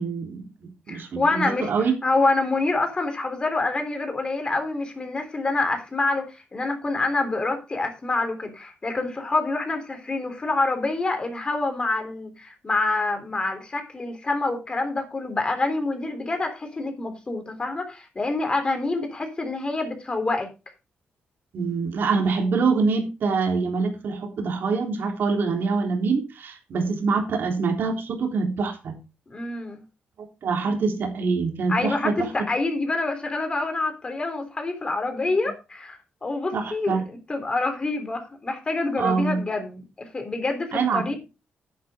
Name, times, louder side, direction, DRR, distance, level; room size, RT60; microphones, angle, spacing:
voice 1, 0.0-1.9 21.5-29.0 30.4-32.3 35.2-35.3 36.5-37.1 39.0-39.4 40.7-41.2, right 4 dB, 70° right, 3 dB, 3.5 m, -25 dB
voice 2, 0.9-1.7 2.0-20.5 29.3-29.8 31.7-41.2, left 3 dB, 25° left, 6 dB, 3.5 m, -27 dB
10.5 x 10.5 x 3.7 m, 0.28 s
wide cardioid pair, 135°, 4 cm